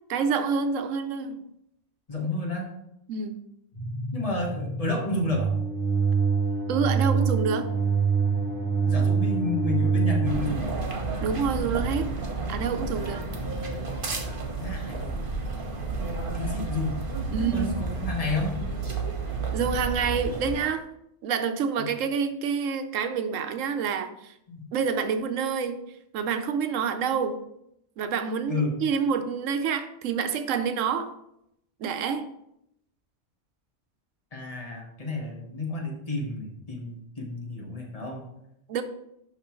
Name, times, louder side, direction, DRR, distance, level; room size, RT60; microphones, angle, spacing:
voice 1, 0.1-1.4 3.1-3.4 6.7-7.7 11.2-12.1 12.5-13.2 17.3-17.7 19.5-20.9 21.2-24.3 24.7-25.8 26.1-27.4 28.0-31.1 31.8-32.3 38.7-38.8, right 6 dB, 90° right, 9 dB, 1.0 m, -27 dB
voice 2, 2.1-2.7 4.1-5.5 8.8-10.7 14.6-15.2 16.3-16.9 17.3-18.5 21.8-21.9 24.5-24.7 28.5-28.7 34.3-38.2, left 2 dB, 30° left, -1 dB, 1.4 m, -31 dB
sound 1, 3.7-10.4, right 5 dB, 65° left, 2.0 m, -25 dB
sound 2, 10.2-20.6, right 3 dB, 45° right, 1.2 m, -31 dB
11.0 x 3.7 x 3.1 m, 0.79 s
omnidirectional pair, 1.3 m